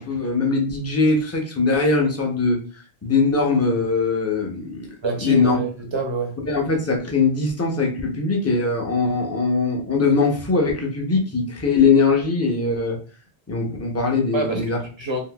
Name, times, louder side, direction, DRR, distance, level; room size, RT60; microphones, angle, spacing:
voice 1, 0.0-2.6 3.0-4.9 5.2-5.6 6.5-13.0 13.5-14.8, left 4 dB, 20° left, 0 dB, 0.5 m, -21 dB
voice 2, 5.0-6.3 14.3-14.7 15.0-15.2, right 3 dB, 35° right, 2 dB, 0.6 m, -26 dB
3.6 x 2.5 x 2.2 m, 0.38 s
omnidirectional pair, 1.1 m